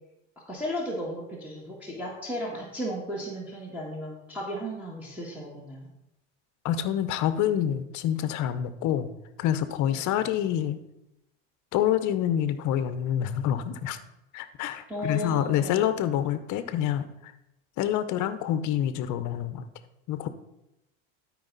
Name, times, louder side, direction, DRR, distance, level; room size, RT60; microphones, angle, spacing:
voice 1, 0.5-5.9 9.9-10.0 14.9-15.8, equal, 5° right, -4 dB, 1.8 m, -35 dB
voice 2, 6.6-9.1 9.4-10.8 11.7-14.0 14.3-17.3 17.8-19.6 20.1-20.3, left 10 dB, 50° left, 12 dB, 0.9 m, -27 dB
12.5 x 4.9 x 4.0 m, 0.87 s
supercardioid pair, 100°, 38 cm